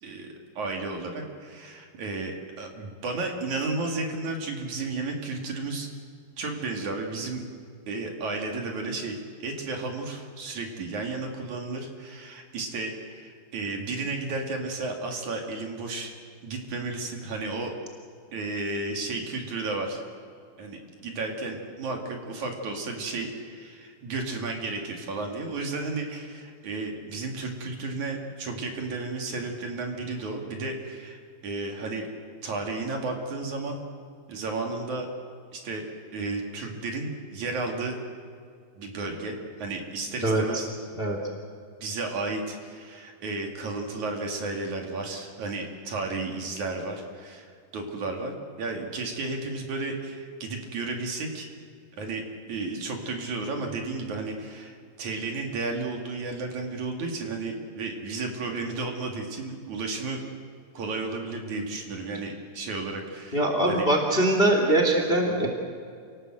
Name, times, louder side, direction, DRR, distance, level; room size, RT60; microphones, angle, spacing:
voice 1, 0.0-5.9 6.4-7.4 7.9-16.1 16.4-17.7 18.3-20.0 20.6-32.1 32.4-33.8 34.3-35.1 35.5-35.8 36.1-38.0 38.8-40.7 41.8-51.5 51.9-60.2 60.7-63.4 63.7-63.8, right 3 dB, 60° right, 2 dB, 3.9 m, -33 dB
voice 2, 63.3-65.5, right 1 dB, 15° left, 3 dB, 2.4 m, -22 dB
28.5 x 18.5 x 7.9 m, 2.3 s
omnidirectional pair, 4.0 m